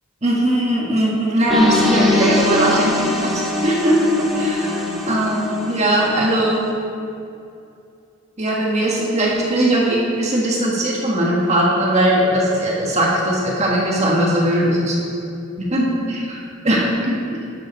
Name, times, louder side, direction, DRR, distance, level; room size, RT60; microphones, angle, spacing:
voice 1, 0.2-3.3 3.6-4.8 5.1-6.7 8.4-15.0 15.6-16.2 16.6-17.4, right 1 dB, 35° right, -4 dB, 1.4 m, -19 dB
sound 1, 1.5-6.4, left 2 dB, ahead, 1.3 m, -22 dB
11.0 x 7.6 x 4.2 m, 2.6 s
head